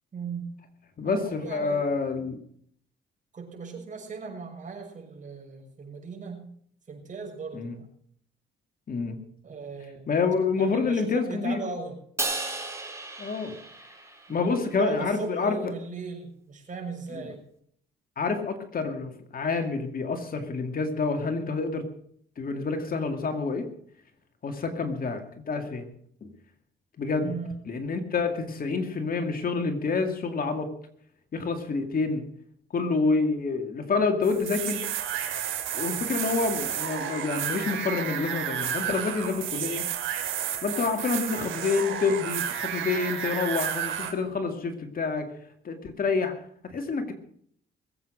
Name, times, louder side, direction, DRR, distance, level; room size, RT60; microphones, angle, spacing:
voice 1, 0.1-0.5 1.0-1.9 3.3-6.5 6.9-7.7 9.4-10.1 10.6-12.0 14.3-17.4 27.2-27.5, right 4 dB, 40° right, 1 dB, 6.5 m, -38 dB
voice 2, 1.0-2.4 7.5-7.8 8.9-9.2 10.1-11.6 13.2-13.6 14.3-15.7 17.1-17.3 18.2-21.9 22.4-23.7 24.4-25.9 26.2-26.3 27.0-27.3 27.7-30.7 31.3-32.3 32.7-34.9 35.7-39.9 40.6-45.3 45.6-47.1, left 4 dB, 45° left, 6 dB, 2.3 m, -28 dB
Crash cymbal, 12.2-14.6, right 2 dB, 15° right, 3.8 m, -34 dB
sound 1, 34.2-44.1, right 9 dB, 75° right, 2.7 m, -31 dB
21.5 x 8.5 x 6.4 m, 0.64 s
cardioid pair, 90°, 20 cm